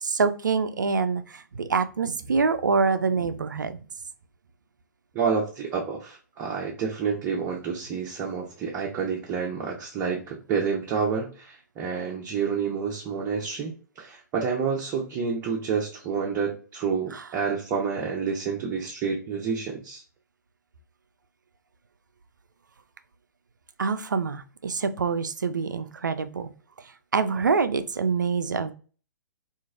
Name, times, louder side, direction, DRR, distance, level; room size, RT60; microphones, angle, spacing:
voice 1, 0.0-3.8 17.1-17.2 23.8-26.5 27.1-28.7, right 5 dB, 80° right, 10 dB, 0.4 m, -25 dB
voice 2, 5.1-20.0, right 6 dB, 25° right, -2 dB, 0.6 m, -29 dB
2.9 x 2.5 x 2.4 m, 0.38 s
figure-of-eight pair, 120°, 10 cm